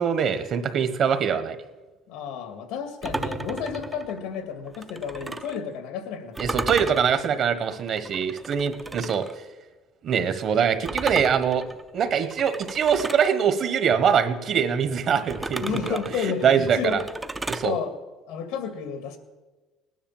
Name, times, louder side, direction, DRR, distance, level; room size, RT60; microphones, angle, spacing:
voice 1, 0.0-1.6 6.4-9.3 10.0-11.7 11.9-17.0 17.5-17.8, right 7 dB, 45° right, 11 dB, 1.3 m, -23 dB
voice 2, 2.1-6.7 15.6-17.0 17.6-17.9 18.3-19.2, left 7 dB, 85° left, 8 dB, 2.1 m, -31 dB
sound 1, 3.0-5.6 6.3-9.3 10.8-13.3 15.3-17.7, right 2 dB, 10° right, 0.5 m, -34 dB
19.0 x 10.0 x 7.3 m, 1.2 s
cardioid pair, 145°, 0 cm